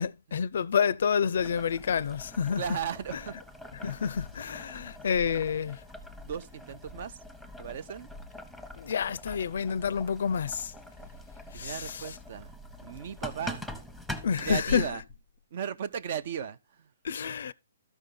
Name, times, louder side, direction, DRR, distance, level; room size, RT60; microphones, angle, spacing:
voice 1, 0.0-2.8 3.1-3.2 3.7-5.8 8.8-10.7 11.5-12.2 14.2-15.0 17.0-17.5, left 7 dB, 65° left, 0.5 m, -29 dB
Boiling, 1.4-14.6, left 1 dB, 5° right, 1.0 m, -44 dB
voice 2, 2.6-3.4 3.8-4.0 6.2-7.2 7.6-8.1 11.5-12.5 12.8-13.6 14.4-15.0 15.5-16.9, right 8 dB, 50° right, 0.7 m, -36 dB
13.0 x 5.5 x 3.7 m
hypercardioid pair, 155°, 0 cm